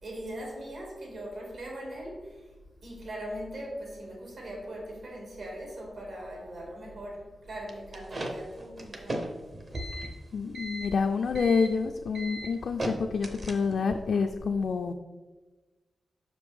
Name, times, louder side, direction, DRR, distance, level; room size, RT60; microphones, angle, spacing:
voice 1, 0.0-2.5 2.8-9.3, right 1 dB, 70° right, -2 dB, 2.1 m, -40 dB
sound 1, 7.7-13.9, right 1 dB, 35° right, 0.7 m, -37 dB
voice 2, 10.3-14.9, left 5 dB, 70° left, 4 dB, 0.3 m, -28 dB
6.2 x 5.0 x 3.5 m, 1.2 s
wide cardioid pair, 160°, 0 cm